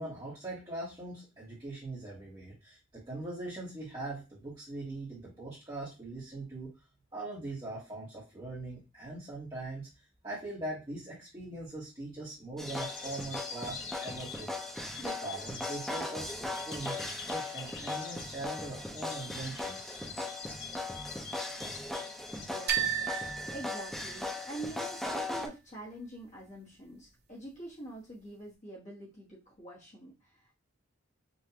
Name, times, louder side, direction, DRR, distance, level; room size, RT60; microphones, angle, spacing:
voice 1, 0.0-6.7 7.1-9.9 10.2-20.0, right 2 dB, 20° right, -8 dB, 1.3 m, -41 dB
sound 1, 12.6-25.5, left 2 dB, ahead, 0.5 m, -38 dB
sound 2, 12.7-22.5, left 6 dB, 55° left, 0.7 m, -46 dB
voice 2, 22.0-30.5, right 1 dB, 35° left, -6 dB, 1.3 m, -46 dB
sound 3, 22.7-24.6, right 8 dB, 45° right, 0.7 m, -34 dB
5.6 x 2.5 x 2.8 m, 0.28 s
head